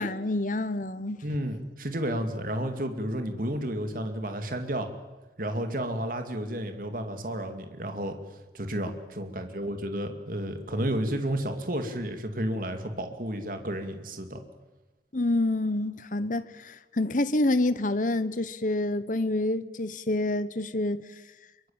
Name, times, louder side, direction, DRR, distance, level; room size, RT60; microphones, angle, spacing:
voice 1, 0.0-1.2 15.1-21.0, left 2 dB, 45° left, 1.1 m, -27 dB
voice 2, 1.2-4.9 5.4-14.4, right 1 dB, 50° right, 2.5 m, -32 dB
24.5 x 23.5 x 8.9 m
head